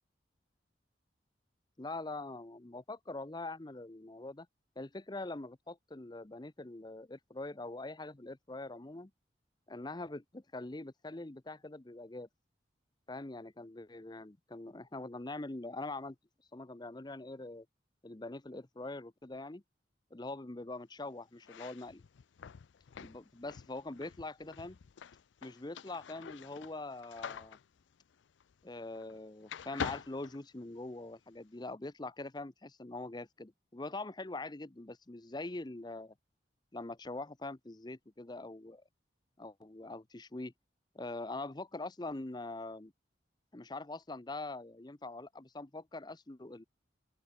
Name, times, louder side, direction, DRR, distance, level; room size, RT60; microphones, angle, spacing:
voice 1, 1.8-4.5 4.8-9.1 9.7-12.3 13.1-16.2 16.5-17.7 18.0-19.6 20.1-22.0 23.0-24.8 25.4-27.6 28.6-36.1 36.7-38.8 39.4-40.5 40.9-42.9 43.5-46.6, left 2 dB, 25° left, 0.8 m, -43 dB
sound 1, 21.4-29.2 29.5-31.1, left 7 dB, 85° left, 0.4 m, -46 dB
open air
head